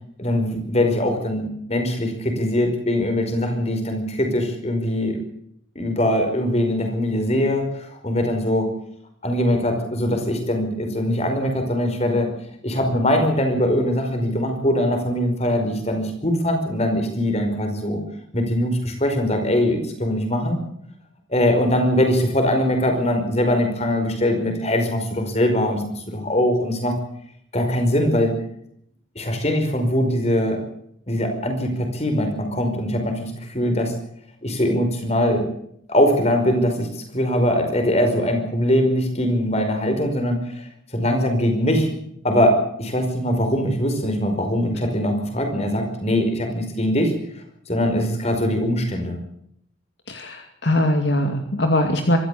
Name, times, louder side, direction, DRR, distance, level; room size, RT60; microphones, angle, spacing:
voice 1, 0.2-5.2 5.8-8.7 9.2-12.3 12.6-18.0 18.3-20.6 21.3-26.9 27.5-28.4 29.2-30.6 31.1-33.9 34.4-35.5 35.9-40.6 40.9-41.9 42.2-47.1 47.7-49.2, left 1 dB, 35° left, 6 dB, 5.2 m, -22 dB
voice 2, 50.1-52.2, left 1 dB, 60° left, 5 dB, 2.4 m, -21 dB
24.5 x 14.0 x 8.4 m, 0.70 s
head